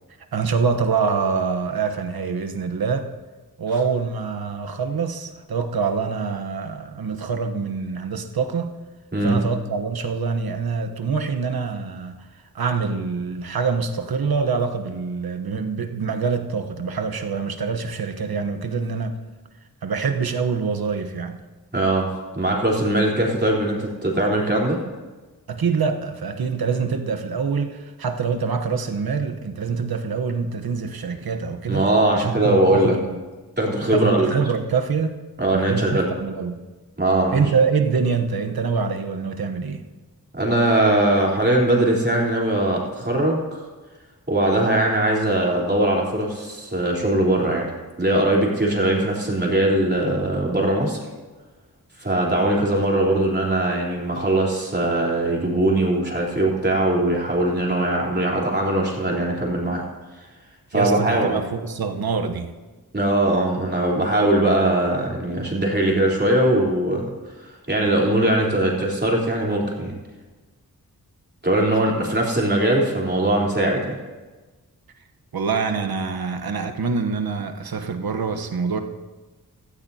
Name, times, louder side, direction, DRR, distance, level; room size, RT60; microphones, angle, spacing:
voice 1, 0.3-3.1 3.6-8.8 9.2-12.2 12.5-19.2 19.8-21.4 25.5-31.9 32.1-33.2 33.9-35.2 35.5-36.6 37.3-39.8 60.7-62.5 72.0-72.1 75.3-78.8, right 5 dB, 75° right, 6 dB, 1.1 m, -25 dB
voice 2, 21.7-22.1 22.3-24.8 31.7-32.9 33.6-34.3 35.4-36.1 37.0-37.4 40.3-43.6 44.3-47.7 48.0-51.0 52.0-59.8 60.7-61.3 62.9-67.1 67.7-69.9 71.4-74.0, right 1 dB, 30° right, -3 dB, 3.6 m, -21 dB
16.5 x 14.5 x 2.8 m, 1.3 s
wide cardioid pair, 65°, 37 cm